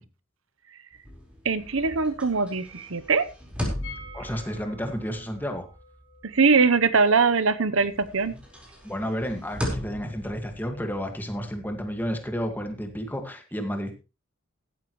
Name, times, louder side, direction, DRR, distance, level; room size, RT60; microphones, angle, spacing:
sound 1, 0.9-7.4 7.7-13.1, equal, 5° right, 4.6 m, -38 dB
voice 1, 1.4-3.3 6.3-8.4, right 4 dB, 80° right, 13 dB, 1.0 m, -22 dB
sound 2, 3.8-9.6 9.9-10.0 10.2-10.3, left 2 dB, 75° left, 3.6 m, -49 dB
voice 2, 4.1-5.7 8.8-13.9, equal, 10° left, 5 dB, 2.0 m, -31 dB
15.5 x 12.5 x 3.2 m, 0.31 s
head